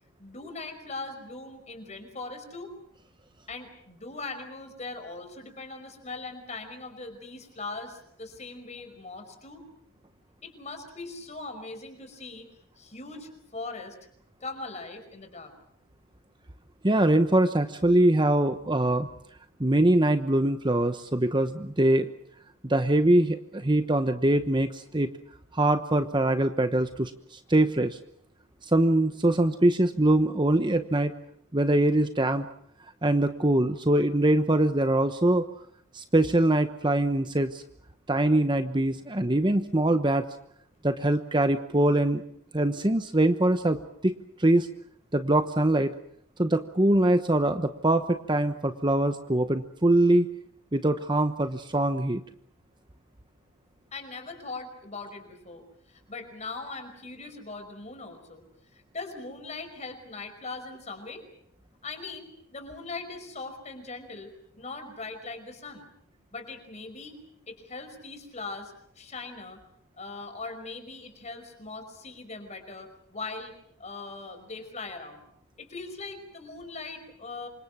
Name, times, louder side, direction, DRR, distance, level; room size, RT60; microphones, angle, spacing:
voice 1, 0.2-2.7 3.5-9.7 10.4-12.5 12.8-13.9 14.4-15.5 53.9-58.4 58.7-61.2 61.8-64.3 64.6-65.9 66.3-67.2 67.5-69.6 70.0-73.5 73.8-75.2 75.6-77.5, left 3 dB, 30° left, 7 dB, 5.5 m, -40 dB
voice 2, 16.8-19.1 19.6-22.1 22.6-25.1 25.5-28.0 28.6-31.1 31.5-32.5 33.0-35.5 35.9-37.6 38.1-40.2 40.8-42.2 42.5-44.1 44.4-44.7 45.1-45.9 46.4-50.3 50.7-52.2, right 1 dB, 20° right, 9 dB, 1.0 m, -23 dB
28.0 x 26.0 x 6.3 m, 0.69 s
head